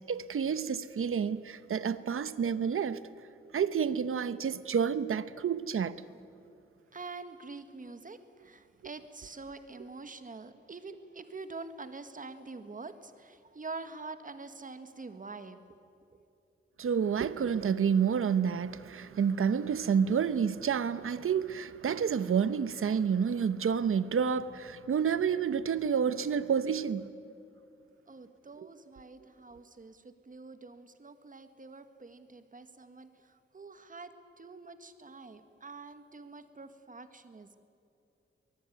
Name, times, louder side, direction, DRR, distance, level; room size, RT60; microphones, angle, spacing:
voice 1, 0.1-3.0 3.5-6.0 16.8-27.1 28.6-28.7, right 7 dB, 90° right, 0.9 m, -29 dB
voice 2, 6.9-15.8 16.1-16.3 28.1-34.1 34.4-37.6, right 3 dB, 40° right, 1.6 m, -46 dB
23.5 x 20.5 x 9.3 m
wide cardioid pair, 135°, 21 cm